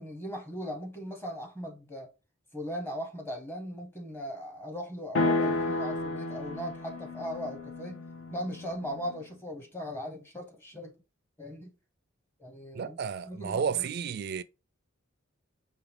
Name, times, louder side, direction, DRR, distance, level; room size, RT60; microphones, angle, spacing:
voice 1, 0.0-2.1 2.5-8.0 8.3-10.9 11.4-11.7 12.4-13.0 13.2-13.9, equal, 10° left, 0.8 m, -38 dB
sound 1, 5.1-9.3, left 2 dB, 65° left, 0.7 m, -32 dB
voice 2, 12.7-14.4, right 7 dB, 50° right, 0.3 m, -32 dB
4.9 x 2.8 x 3.3 m
head